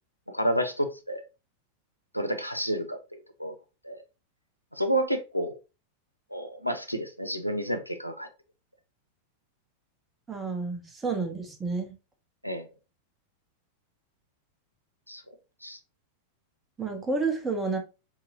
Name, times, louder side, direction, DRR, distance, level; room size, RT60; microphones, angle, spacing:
voice 1, 0.3-1.2 2.1-3.5 3.8-4.0 4.7-5.6 6.3-8.3 12.4-12.7 15.1-15.2 15.6-15.8, right 1 dB, 90° left, 0.4 m, -30 dB
voice 2, 10.3-11.9 16.8-17.8, right 4 dB, 15° right, 0.9 m, -30 dB
4.1 x 2.8 x 2.8 m
figure-of-eight pair, 90°, 0 cm